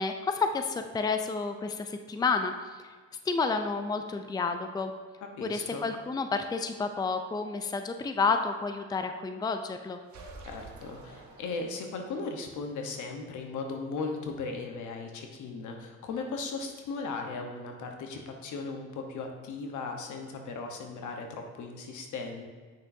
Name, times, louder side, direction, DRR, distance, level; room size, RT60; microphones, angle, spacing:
voice 1, 0.0-2.5 3.3-4.9 5.4-10.0, left 4 dB, 15° left, 7 dB, 0.4 m, -30 dB
voice 2, 5.2-5.8 10.5-22.5, left 4 dB, 80° left, 3 dB, 1.1 m, -37 dB
sound 1, 10.1-12.1, right 3 dB, 70° right, 1.1 m, -48 dB
8.5 x 6.2 x 2.7 m, 1.5 s
cardioid pair, 90°, 30 cm